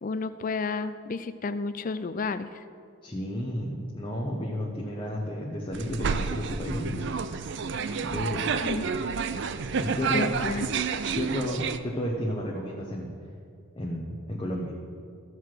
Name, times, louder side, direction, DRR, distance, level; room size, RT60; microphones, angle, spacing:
voice 1, 0.0-2.6 8.6-8.9 10.1-10.7, left 4 dB, 35° left, 12 dB, 0.4 m, -31 dB
voice 2, 3.0-7.1 8.1-8.6 9.8-10.3 11.1-13.2 13.8-14.7, equal, 20° left, -3 dB, 0.9 m, -32 dB
sound 1, 5.7-11.8, right 5 dB, 50° right, 0.4 m, -30 dB
14.0 x 4.8 x 7.5 m, 2.3 s
head